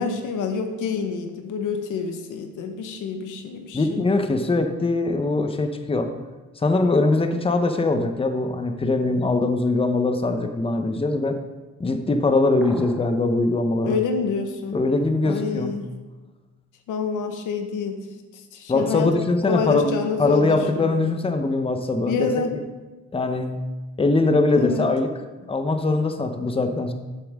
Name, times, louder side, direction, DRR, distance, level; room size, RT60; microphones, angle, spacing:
voice 1, 0.0-4.0 13.8-14.8 15.2-15.9 16.9-18.0 18.5-19.1 19.5-20.9 22.1-22.5 24.6-24.9, left 5 dB, 85° left, 6 dB, 1.2 m, -27 dB
voice 2, 3.7-6.1 6.6-11.4 11.8-14.0 14.7-15.8 18.7-19.9 20.2-22.3 23.1-23.6 24.0-25.1 25.5-26.9, left 2 dB, 20° left, 7 dB, 0.9 m, -22 dB
sound 1, 12.6-13.2, equal, ahead, 1.2 m, -41 dB
12.5 x 7.2 x 3.6 m, 1.2 s
cardioid pair, 90°, 30 cm